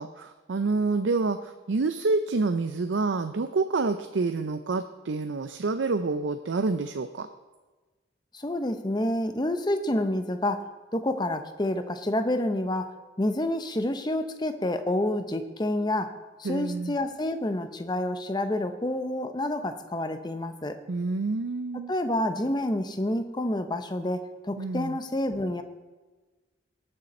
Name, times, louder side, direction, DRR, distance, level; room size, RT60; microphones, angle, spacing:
voice 1, 0.0-7.3 16.4-17.0 20.9-21.9 24.6-25.0, right 3 dB, 85° right, 9 dB, 0.5 m, -28 dB
voice 2, 8.3-10.7 10.9-12.9 13.2-16.1 16.4-20.8 21.9-25.6, left 1 dB, 25° left, 9 dB, 0.7 m, -28 dB
19.0 x 6.7 x 4.3 m, 1.2 s
head